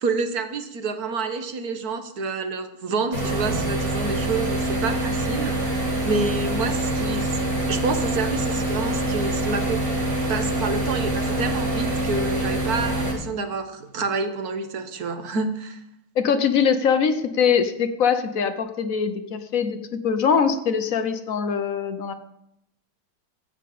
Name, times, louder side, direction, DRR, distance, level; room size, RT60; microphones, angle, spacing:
voice 1, 0.0-7.4 7.7-9.8 10.3-15.8, right 4 dB, 55° right, 8 dB, 1.5 m, -28 dB
sound 1, 3.1-13.1, right 1 dB, 70° right, 4.5 m, -25 dB
voice 2, 16.2-22.1, left 6 dB, 55° left, 9 dB, 1.0 m, -22 dB
14.5 x 5.2 x 8.5 m, 0.79 s
omnidirectional pair, 2.3 m